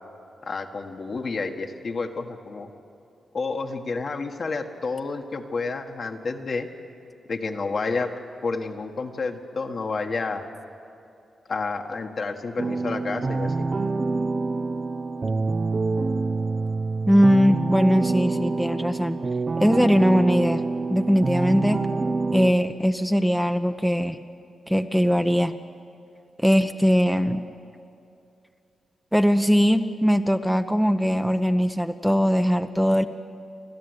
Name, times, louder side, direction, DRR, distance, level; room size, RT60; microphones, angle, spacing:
voice 1, 0.4-2.7 3.3-6.7 7.3-8.1 8.4-10.5 11.5-13.7, left 4 dB, 55° left, 4 dB, 1.6 m, -30 dB
sound 1, 12.6-22.5, right 3 dB, 45° right, 0.7 m, -26 dB
voice 2, 17.1-19.2 19.6-20.6 20.9-21.8 22.3-24.2 24.7-25.5 26.4-27.4 29.1-33.0, equal, ahead, 7 dB, 0.8 m, -20 dB
29.5 x 12.0 x 8.1 m, 2.6 s
cardioid pair, 55°, 0 cm